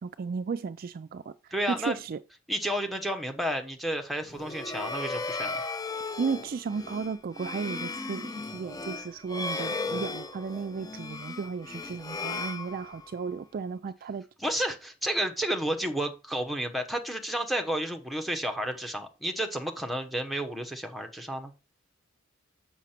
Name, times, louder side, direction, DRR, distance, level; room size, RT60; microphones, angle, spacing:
voice 1, 0.0-2.2 6.2-14.3, right 5 dB, 45° right, 0.3 m, -34 dB
voice 2, 1.5-2.0 2.5-5.6 14.4-21.5, right 1 dB, ahead, 1.0 m, -31 dB
sound 1, 4.3-13.3, left 3 dB, 20° left, 0.5 m, -36 dB
7.1 x 5.7 x 4.4 m
head